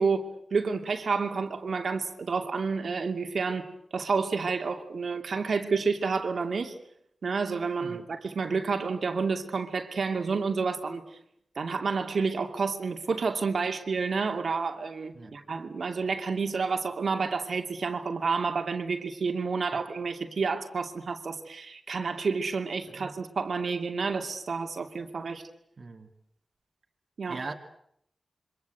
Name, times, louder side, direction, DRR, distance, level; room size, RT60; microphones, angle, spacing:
voice 1, 0.0-6.7 7.2-11.0 11.6-25.4 27.2-27.4, right 4 dB, 70° right, 2.6 m, -30 dB
voice 2, 25.8-26.1 27.3-27.5, right 3 dB, 50° right, 2.3 m, -40 dB
27.5 x 25.0 x 8.0 m
wide cardioid pair, 95°, 0 cm